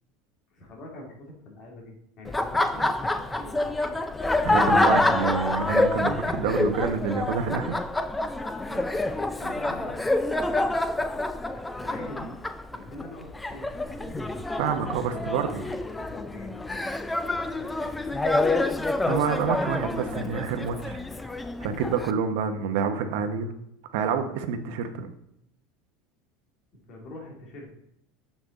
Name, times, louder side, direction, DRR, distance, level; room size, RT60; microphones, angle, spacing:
voice 1, 0.5-4.0 8.7-10.6 11.5-12.4 12.7-14.1 14.9-15.2 15.9-18.2 26.7-27.8, left 1 dB, 40° left, -1 dB, 2.7 m, -44 dB
Laughter, 2.2-22.1, left 2 dB, 5° left, 0.4 m, -27 dB
voice 2, 4.4-7.8 14.5-15.6 19.0-21.0 21.6-23.5 23.9-25.1, right 6 dB, 70° right, 7 dB, 1.0 m, -28 dB
7.4 x 6.0 x 3.9 m, 0.78 s
supercardioid pair, 155°, 0 cm